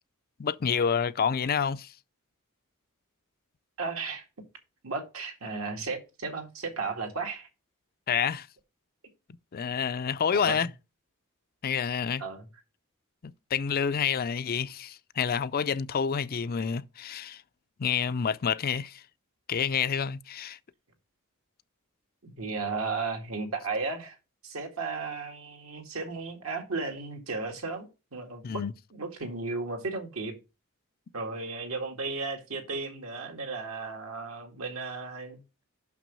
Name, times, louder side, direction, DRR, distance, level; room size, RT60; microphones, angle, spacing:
voice 1, 0.4-1.9 8.1-8.5 9.5-10.7 11.6-12.2 13.2-17.4 17.8-19.0 19.5-20.6 28.4-28.7, left 7 dB, 45° left, 0.4 m, -28 dB
voice 2, 3.8-4.2 4.8-7.5 10.3-10.6 12.2-12.4 22.2-24.2 24.4-28.6 28.9-30.4 31.1-35.6, right 4 dB, 75° right, 2.1 m, -35 dB
6.1 x 6.0 x 5.4 m
head